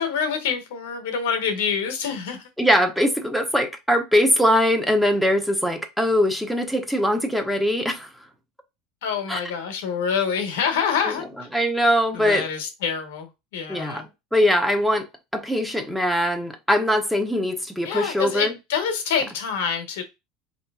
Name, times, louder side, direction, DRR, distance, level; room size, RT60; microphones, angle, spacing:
voice 1, 0.0-2.4 9.0-11.3 12.1-14.1 17.8-20.0, left 6 dB, 80° left, 0.9 m, -26 dB
voice 2, 2.6-8.1 9.3-9.4 11.0-11.1 11.5-12.5 13.7-15.1 15.3-18.5, equal, ahead, 0.7 m, -21 dB
3.7 x 2.7 x 2.2 m
hypercardioid pair, 95°, 0 cm